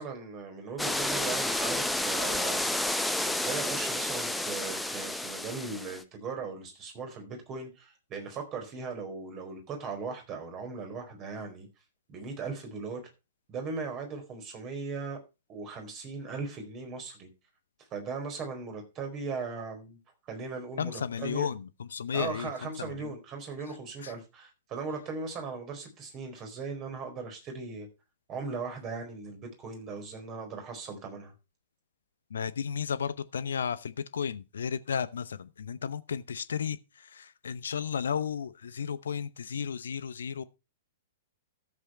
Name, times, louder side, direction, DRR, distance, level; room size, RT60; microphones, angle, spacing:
voice 1, 0.0-2.7 3.2-11.7 12.1-13.0 13.5-15.2 15.5-17.3 17.9-20.0 20.2-21.5 22.1-27.9 28.3-31.3, right 4 dB, 30° right, 4.4 m, -38 dB
sound 1, 0.8-6.0, left 1 dB, 5° left, 0.9 m, -30 dB
voice 2, 20.8-23.1 24.0-24.1 32.3-40.4, left 7 dB, 65° left, 0.7 m, -34 dB
13.5 x 7.8 x 4.4 m
figure-of-eight pair, 105°, 0 cm